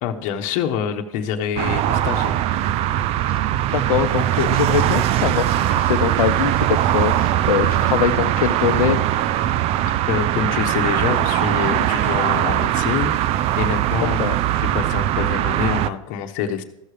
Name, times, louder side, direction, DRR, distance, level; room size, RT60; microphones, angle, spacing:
voice 1, 0.0-2.4 9.9-13.1 13.6-14.2 14.6-16.6, left 8 dB, 45° left, 5 dB, 1.2 m, -26 dB
sound 1, 1.6-15.9, right 12 dB, 35° right, 0.4 m, -20 dB
voice 2, 3.7-9.1 14.0-14.4, left 9 dB, 90° left, 11 dB, 0.7 m, -22 dB
14.5 x 6.4 x 5.0 m, 0.94 s
hypercardioid pair, 120°, 17 cm